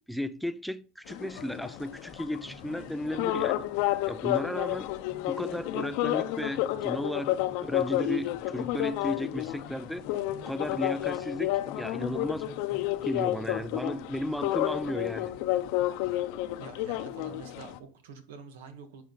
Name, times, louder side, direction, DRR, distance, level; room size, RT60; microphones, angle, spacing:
voice 1, 0.1-4.9 5.3-10.0 10.5-12.5 13.0-15.3, left 1 dB, ahead, 0.4 m, -34 dB
sound 1, 1.1-17.8, left 15 dB, 60° left, 0.7 m, -31 dB
sound 2, 1.4-17.4, equal, 40° right, 2.6 m, -52 dB
voice 2, 16.6-19.0, right 5 dB, 80° right, 1.7 m, -46 dB
10.0 x 4.9 x 4.0 m
supercardioid pair, 130°, 0 cm